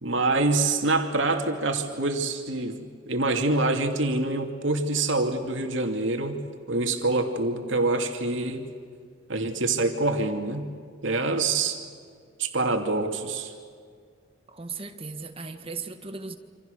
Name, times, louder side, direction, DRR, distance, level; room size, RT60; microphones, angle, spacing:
voice 1, 0.0-8.7 9.3-10.7 11.0-11.8 12.4-13.5, right 2 dB, 75° right, 4 dB, 2.6 m, -26 dB
voice 2, 14.5-16.4, right 4 dB, 30° right, 7 dB, 1.7 m, -37 dB
27.5 x 27.0 x 6.7 m, 2.1 s
head